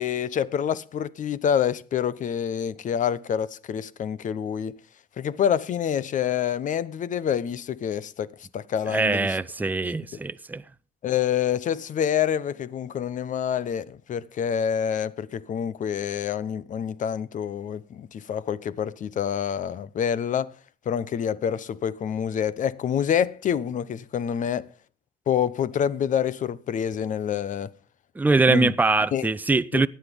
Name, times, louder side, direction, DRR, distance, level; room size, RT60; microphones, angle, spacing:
voice 1, 0.0-4.8 5.2-8.3 8.5-9.4 9.8-9.9 11.0-20.5 20.9-24.7 25.3-27.7 28.5-28.7 29.1-29.3 29.7-29.8, left 8 dB, 50° left, 0.9 m, -27 dB
voice 2, 8.9-10.6 28.2-29.9, right 3 dB, 10° right, 0.7 m, -22 dB
16.0 x 10.0 x 5.4 m
cardioid pair, 110°, 17 cm